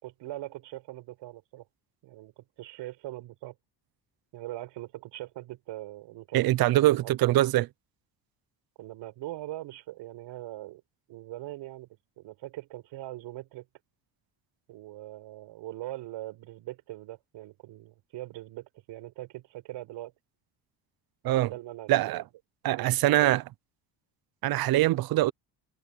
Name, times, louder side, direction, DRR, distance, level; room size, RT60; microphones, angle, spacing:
voice 1, 0.0-1.7 2.0-3.6 4.3-6.5 6.7-7.3 8.8-10.8 11.1-11.9 12.2-13.7 14.7-20.1 21.3-22.3 22.7-23.3, right 16 dB, 75° right, 5.8 m, -41 dB
voice 2, 6.3-7.7 21.2-21.5 21.9-22.2 22.6-23.4 24.4-25.3, right 15 dB, 55° right, 0.7 m, -23 dB
cardioid pair, 145°, 43 cm